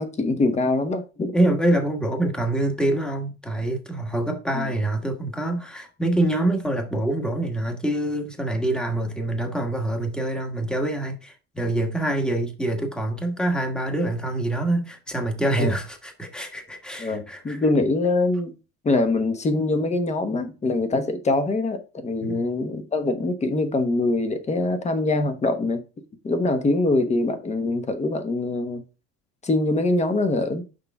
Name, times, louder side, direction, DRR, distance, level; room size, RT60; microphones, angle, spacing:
voice 1, 0.0-1.4 4.5-4.7 15.6-15.7 17.0-18.5 18.8-25.8 26.2-28.8 29.4-30.6, left 2 dB, 20° left, 1.1 m, -23 dB
voice 2, 1.3-17.6 22.2-22.6, right 1 dB, 5° left, 1.4 m, -25 dB
6.7 x 5.4 x 3.5 m
cardioid pair, 140°, 33 cm